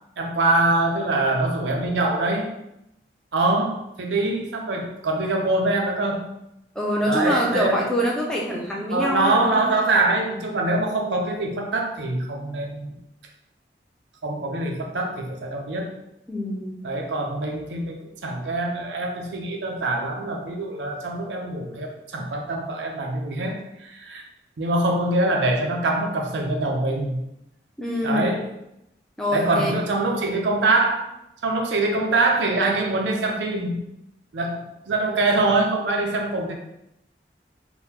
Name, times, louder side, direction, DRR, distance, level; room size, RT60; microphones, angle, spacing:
voice 1, 0.2-2.5 3.3-6.3 7.1-7.8 8.9-13.0 14.2-15.9 16.8-24.2 24.6-27.2 28.0-28.4 29.3-31.1 31.4-33.9 34.3-36.5, right 2 dB, 85° right, 1 dB, 0.5 m, -24 dB
voice 2, 6.8-9.6 16.3-16.8 27.8-28.3 29.2-29.8, equal, 5° left, -3 dB, 0.5 m, -25 dB
3.6 x 2.2 x 2.8 m, 0.84 s
head